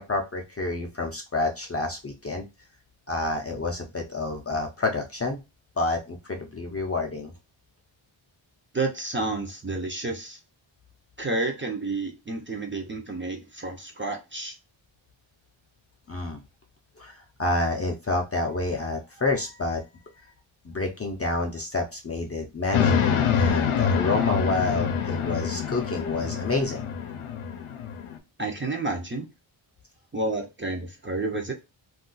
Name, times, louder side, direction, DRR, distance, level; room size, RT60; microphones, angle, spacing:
voice 1, 0.0-2.5 3.1-5.4 5.8-7.3 16.1-16.4 17.0-19.8 20.6-26.9, left 2 dB, 30° left, 0.5 m, -28 dB
voice 2, 8.7-10.4 11.2-14.6 28.4-29.3 30.1-31.5, right 2 dB, 25° right, 0.5 m, -30 dB
sound 1, 22.7-28.2, left 7 dB, 90° left, 0.6 m, -26 dB
2.4 x 2.3 x 3.7 m
wide cardioid pair, 130°, 49 cm